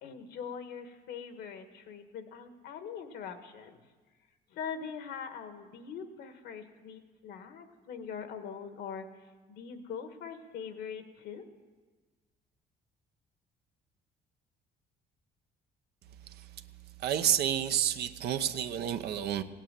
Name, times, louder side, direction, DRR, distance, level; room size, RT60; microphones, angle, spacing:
voice 1, 0.0-3.8 4.5-11.4, left 6 dB, 80° left, 1.6 m, -42 dB
voice 2, 17.0-19.4, right 10 dB, 70° right, 0.9 m, -30 dB
17.0 x 9.1 x 8.9 m
cardioid pair, 110°, 17 cm